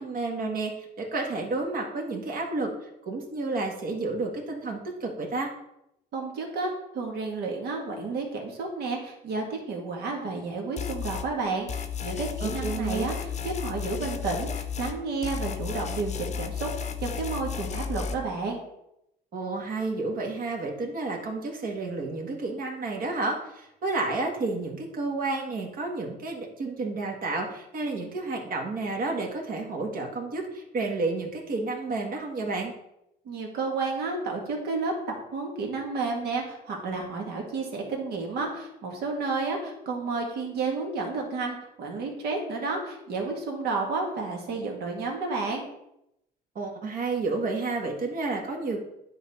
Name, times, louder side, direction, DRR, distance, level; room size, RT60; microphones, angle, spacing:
voice 1, 0.0-5.5 12.4-13.1 19.3-32.7 46.5-48.8, right 3 dB, 55° right, 1 dB, 1.7 m, -31 dB
voice 2, 6.1-18.6 33.3-34.9 35.3-45.6, right 3 dB, 70° right, 1 dB, 2.0 m, -31 dB
sound 1, 10.8-11.3 11.7-15.0 15.2-18.2, left 7 dB, 40° left, 0.7 m, -33 dB
10.0 x 4.2 x 4.2 m, 0.82 s
cardioid pair, 110°, 17 cm